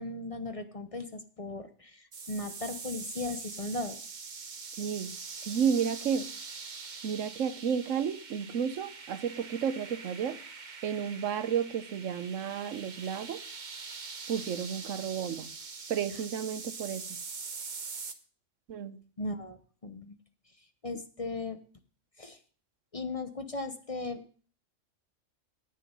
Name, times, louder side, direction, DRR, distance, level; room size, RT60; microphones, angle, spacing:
voice 1, 0.0-4.1 16.1-16.2 19.2-20.2 20.6-21.6 22.2-22.4 22.9-24.2, left 2 dB, 30° left, 8 dB, 0.8 m, -37 dB
sound 1, 2.1-18.1, right 5 dB, 40° right, 1.0 m, -43 dB
voice 2, 4.8-5.2 5.4-6.3 7.0-10.4 10.8-13.4 14.3-15.5 15.9-17.1 18.7-19.0, right 7 dB, 90° right, 13 dB, 1.2 m, -32 dB
10.0 x 9.2 x 5.3 m, 0.42 s
omnidirectional pair, 1.3 m